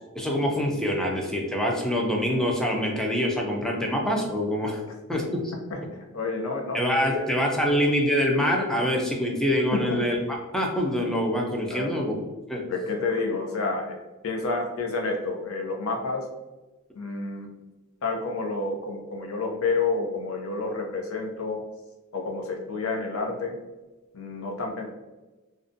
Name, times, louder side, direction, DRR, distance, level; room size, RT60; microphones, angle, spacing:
voice 1, 0.1-4.8 5.1-5.5 6.7-10.2 10.5-12.2 12.5-12.6, equal, 5° left, 0 dB, 0.4 m, -25 dB
voice 2, 5.7-7.2 7.6-7.8 9.7-10.0 11.7-12.1 12.7-14.0 14.2-16.3 16.9-17.5 18.0-21.6 22.1-23.5 24.1-24.9, left 3 dB, 75° left, 2 dB, 0.5 m, -29 dB
2.5 x 2.1 x 2.5 m, 1.2 s
head